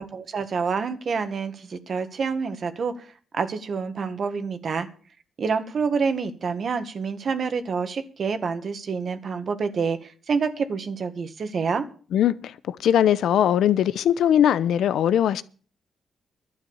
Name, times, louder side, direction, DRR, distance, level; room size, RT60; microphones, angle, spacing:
voice 1, 0.0-3.1 3.3-4.9 5.4-11.9, right 5 dB, 55° right, 1.6 m, -27 dB
voice 2, 12.1-15.4, left 10 dB, 85° left, 0.7 m, -20 dB
12.0 x 9.1 x 7.2 m
cardioid pair, 100°, 0 cm